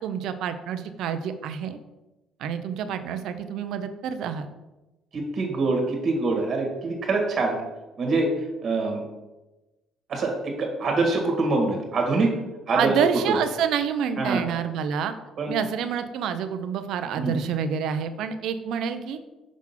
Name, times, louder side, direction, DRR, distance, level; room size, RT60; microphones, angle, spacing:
voice 1, 0.0-1.8 2.4-4.5 12.7-15.1 15.5-19.2, right 7 dB, 75° right, 10 dB, 0.6 m, -28 dB
voice 2, 5.1-7.6 8.0-8.3 8.6-9.0 10.1-12.4 12.7-12.9 13.3-13.4 14.2-14.4 15.4-15.6 17.2-17.3, right 3 dB, 45° right, 2 dB, 1.8 m, -24 dB
6.0 x 3.8 x 5.8 m, 1.0 s
cardioid pair, 120°, 0 cm